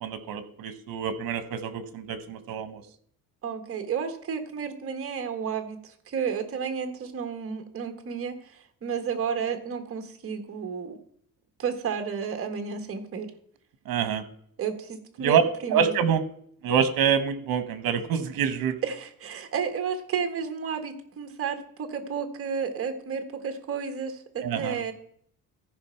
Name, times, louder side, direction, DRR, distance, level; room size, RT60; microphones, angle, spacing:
voice 1, 0.0-2.8 13.8-14.2 15.2-15.4 15.7-16.2 16.6-18.8 24.4-24.8, right 7 dB, 65° right, 11 dB, 1.3 m, -26 dB
voice 2, 3.4-11.0 11.6-13.3 14.6-15.9 18.8-24.9, right 6 dB, 35° right, 6 dB, 1.5 m, -32 dB
14.5 x 5.1 x 5.8 m, 0.64 s
cardioid pair, 170°, 36 cm